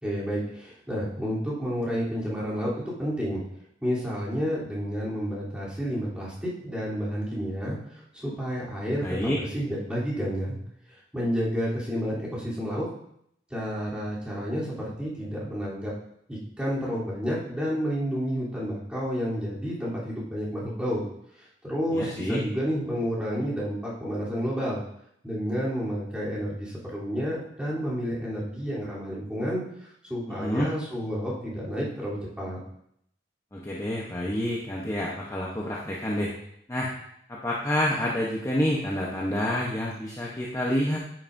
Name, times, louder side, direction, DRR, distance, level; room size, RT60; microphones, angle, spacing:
voice 1, 0.0-3.4 3.8-10.6 10.9-12.9 13.5-15.9 16.3-21.0 21.4-24.8 25.2-32.6, equal, 5° right, -9 dB, 3.3 m, -30 dB
voice 2, 9.0-9.4 21.9-22.4 30.3-30.7 33.5-36.3 36.7-36.9 37.3-41.0, left 1 dB, 15° left, -4 dB, 0.9 m, -28 dB
9.7 x 9.1 x 2.7 m, 0.73 s
head